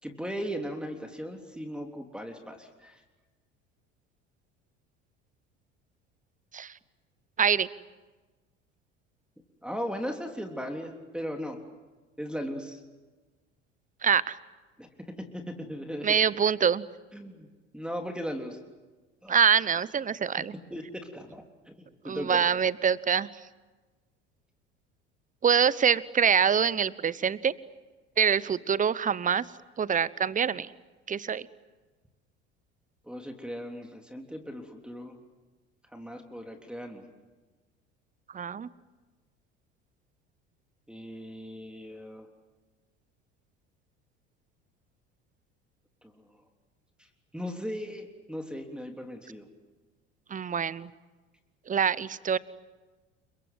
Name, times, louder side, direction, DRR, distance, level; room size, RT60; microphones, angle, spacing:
voice 1, 0.0-3.0 9.6-11.6 12.2-12.8 14.8-14.9 15.2-16.2 17.1-17.5 17.7-18.6 19.2-19.4 20.7-22.4 33.1-35.1 35.9-37.1 40.9-42.3 47.3-49.5, equal, 5° right, 4 dB, 3.4 m, -37 dB
voice 2, 14.0-14.4 16.0-16.8 19.3-20.5 22.0-23.3 25.4-27.5 28.2-29.4 29.8-30.7 31.1-31.5 38.3-38.7 50.3-50.9 51.7-52.4, right 7 dB, 20° right, 20 dB, 0.9 m, -25 dB
29.5 x 23.5 x 7.9 m, 1.3 s
figure-of-eight pair, 65°, 35 cm